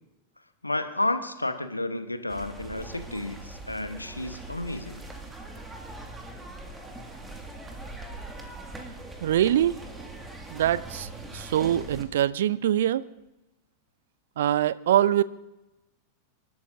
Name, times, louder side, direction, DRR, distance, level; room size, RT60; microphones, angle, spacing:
voice 1, 0.6-5.0, left 2 dB, 85° left, 1.2 m, -31 dB
sound 1, 2.3-12.0, right 2 dB, 10° right, 2.1 m, -41 dB
voice 2, 9.2-9.8 10.5-13.1 14.4-15.2, right 11 dB, 60° right, 0.5 m, -24 dB
27.5 x 12.0 x 2.7 m
figure-of-eight pair, 90°, 0 cm